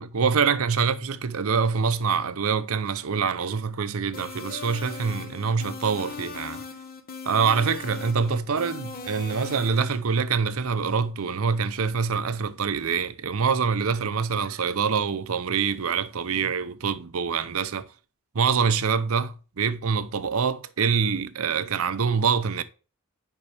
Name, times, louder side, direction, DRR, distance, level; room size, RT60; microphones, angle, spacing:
voice 1, 0.0-6.6 7.3-17.9 18.3-22.6, right 5 dB, 70° right, 0.6 m, -25 dB
sound 1, 4.1-10.0, left 4 dB, 40° left, 1.1 m, -39 dB
9.6 x 5.4 x 3.4 m
head